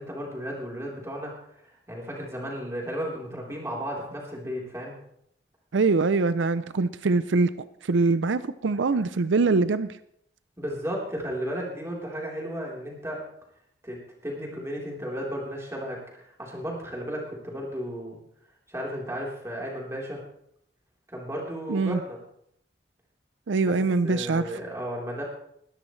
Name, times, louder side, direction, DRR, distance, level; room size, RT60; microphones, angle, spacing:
voice 1, 0.0-1.3 1.6-5.0 10.6-13.2 13.8-18.2 18.7-20.2 21.1-22.2 23.7-23.8 24.0-25.2, equal, 15° right, -3 dB, 3.8 m, -34 dB
voice 2, 5.7-7.5 7.8-10.0 21.7-22.0 23.5-24.5, right 3 dB, 85° right, 14 dB, 0.5 m, -23 dB
20.5 x 12.5 x 3.2 m, 0.73 s
head